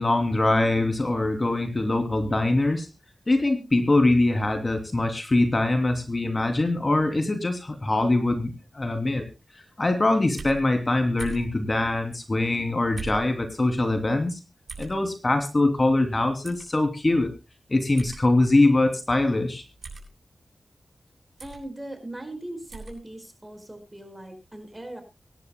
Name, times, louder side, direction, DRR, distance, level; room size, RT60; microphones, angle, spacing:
voice 1, 0.0-2.9 3.3-9.2 9.5-14.4 14.8-17.3 17.7-19.6, left 2 dB, 35° left, 5 dB, 2.9 m, -23 dB
sound 1, 10.4-10.6 11.2-11.5 13.0-13.3 14.7-14.9 16.4-16.7 18.0-18.2 19.8-20.1 21.4-21.6 22.7-23.0, right 3 dB, 70° right, 8.0 m, -38 dB
voice 2, 21.4-25.0, right 1 dB, 20° right, 7 dB, 5.0 m, -39 dB
24.0 x 11.0 x 2.2 m, 0.27 s
wide cardioid pair, 70°, 0 cm